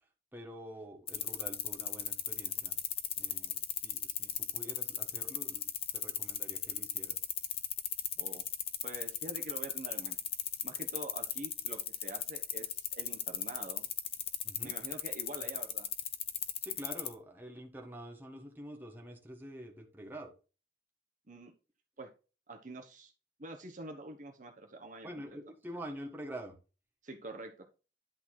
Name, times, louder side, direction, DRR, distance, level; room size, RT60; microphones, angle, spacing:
voice 1, 0.3-2.8 3.2-5.6 5.9-7.2 14.4-14.7 16.6-20.3 25.0-26.5, right 1 dB, 10° right, 2 dB, 1.5 m, -47 dB
sound 1, 1.1-17.1, left 10 dB, 35° left, 0.8 m, -36 dB
voice 2, 8.8-10.2 10.6-13.9 14.6-15.9 21.3-21.5 22.0-22.1 22.5-23.1 23.4-25.1 27.0-27.7, right 2 dB, 45° right, 4 dB, 1.1 m, -46 dB
11.0 x 4.1 x 4.6 m, 0.33 s
head